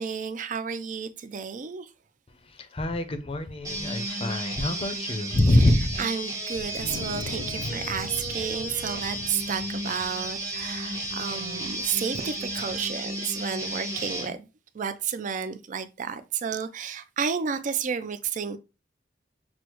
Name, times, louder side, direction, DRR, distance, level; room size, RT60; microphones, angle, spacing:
voice 1, 0.0-1.9 4.7-4.9 5.5-14.5 14.7-18.6, right 6 dB, 45° right, 0.4 m, -32 dB
voice 2, 2.6-6.0, left 1 dB, 30° left, 0.5 m, -24 dB
sound 1, 3.6-14.3, right 1 dB, 20° right, 1.0 m, -33 dB
Wind, 6.5-13.0, left 3 dB, 90° left, 0.5 m, -41 dB
6.1 x 2.1 x 2.9 m
head